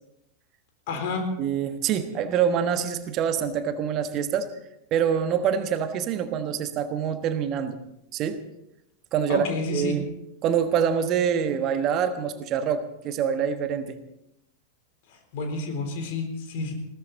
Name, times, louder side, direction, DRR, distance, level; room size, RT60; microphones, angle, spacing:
voice 1, 0.9-1.2 9.3-9.9 15.3-16.7, left 3 dB, 50° left, 5 dB, 3.8 m, -29 dB
voice 2, 1.4-4.5 4.9-7.8 8.1-8.4 9.1-9.4 9.7-10.1 10.4-14.0, right 8 dB, 35° right, 9 dB, 1.3 m, -25 dB
21.0 x 16.5 x 4.1 m, 0.84 s
figure-of-eight pair, 90°, 0 cm